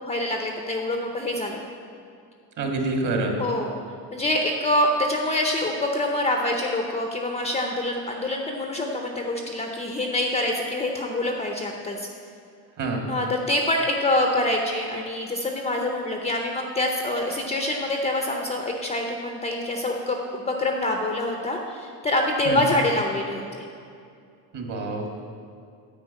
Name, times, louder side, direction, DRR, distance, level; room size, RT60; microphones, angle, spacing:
voice 1, 0.0-1.6 3.4-3.8 4.1-12.1 13.1-23.7, left 1 dB, 15° left, 2 dB, 0.6 m, -26 dB
voice 2, 2.6-3.3 12.8-13.0 22.4-22.6 24.5-25.2, right 3 dB, 45° right, 2 dB, 1.8 m, -27 dB
9.5 x 4.9 x 8.0 m, 2.4 s
cardioid pair, 140°, 43 cm